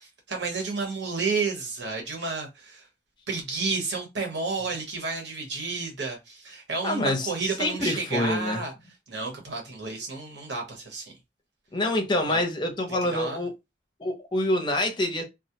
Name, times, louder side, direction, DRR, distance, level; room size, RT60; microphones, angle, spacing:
voice 1, 0.0-2.9 3.3-8.7 9.1-11.2 12.3-12.4 13.1-13.4, right 4 dB, 65° right, 1.0 m, -31 dB
voice 2, 6.8-8.6 11.7-13.5 14.0-15.2, left 1 dB, 25° left, 0.5 m, -26 dB
2.3 x 2.0 x 2.7 m
head